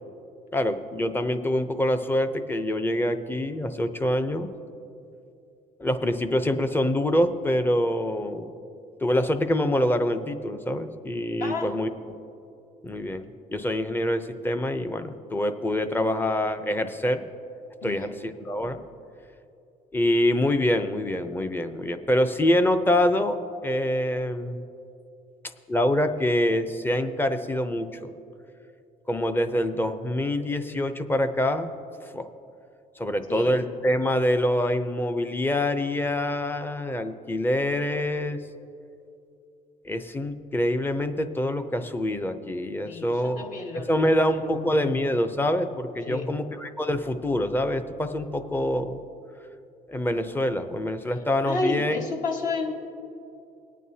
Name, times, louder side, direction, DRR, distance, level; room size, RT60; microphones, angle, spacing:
voice 1, 0.5-4.5 5.8-8.5 9.0-11.9 12.8-17.2 17.8-18.8 19.9-23.4 23.6-24.6 25.7-28.1 29.1-31.7 32.0-32.3 33.0-38.4 39.8-43.5 43.7-49.0 49.9-52.0, left 1 dB, 10° left, 9 dB, 0.6 m, -25 dB
voice 2, 11.4-11.7 17.8-18.2 33.3-33.6 42.9-45.0 46.0-46.3 51.5-52.7, left 3 dB, 55° left, 2 dB, 1.5 m, -31 dB
21.0 x 9.2 x 2.8 m, 2.7 s
cardioid pair, 110°, 17 cm